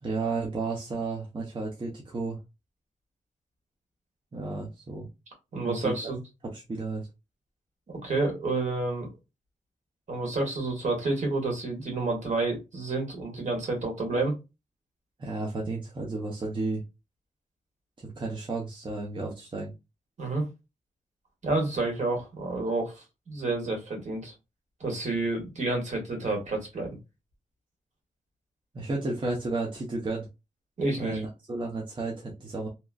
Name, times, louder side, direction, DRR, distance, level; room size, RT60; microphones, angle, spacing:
voice 1, 0.0-2.4 4.3-5.1 5.6-5.9 6.5-7.0 15.2-16.8 18.0-19.7 28.7-30.3 31.0-32.7, right 3 dB, 35° right, -2 dB, 0.7 m, -32 dB
voice 2, 5.5-6.2 7.9-9.1 10.1-14.4 20.2-20.4 21.4-24.3 24.8-26.9 30.8-31.2, right 2 dB, 65° right, 2 dB, 1.4 m, -29 dB
3.0 x 2.5 x 2.2 m, 0.25 s
wide cardioid pair, 120°, 13 cm